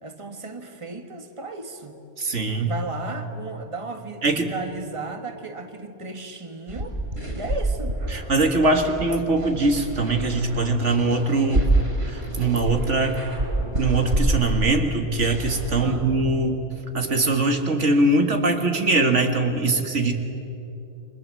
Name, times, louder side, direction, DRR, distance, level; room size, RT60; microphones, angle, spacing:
voice 1, 0.0-2.0 2.6-7.0 7.3-8.0 8.7-8.8 15.8-16.1, right 3 dB, 25° right, 5 dB, 1.8 m, -35 dB
voice 2, 2.2-2.7 4.2-4.5 8.1-11.7 12.1-13.2 13.8-16.6 16.9-20.1, right 2 dB, 75° right, 4 dB, 2.2 m, -22 dB
sound 1, 6.7-16.6, right 2 dB, 55° right, 6.2 m, -28 dB
29.5 x 25.0 x 7.7 m, 3.0 s
omnidirectional pair, 1.2 m